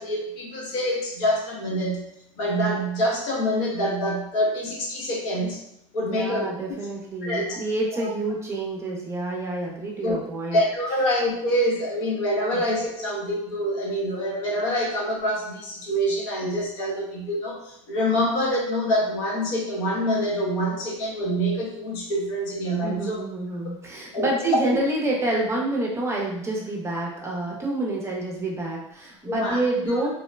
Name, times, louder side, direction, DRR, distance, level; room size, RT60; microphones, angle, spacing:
voice 1, 0.0-2.0 2.4-5.6 5.9-6.5 7.2-7.6 7.9-8.1 10.0-10.2 10.5-23.2 24.1-24.3 25.3-25.4 29.2-29.6, equal, 65° left, -3 dB, 1.0 m, -26 dB
voice 2, 6.0-10.6 12.5-12.6 22.8-30.1, right 2 dB, 15° right, -2 dB, 0.6 m, -28 dB
3.0 x 2.0 x 2.2 m, 0.76 s
hypercardioid pair, 100°, 17 cm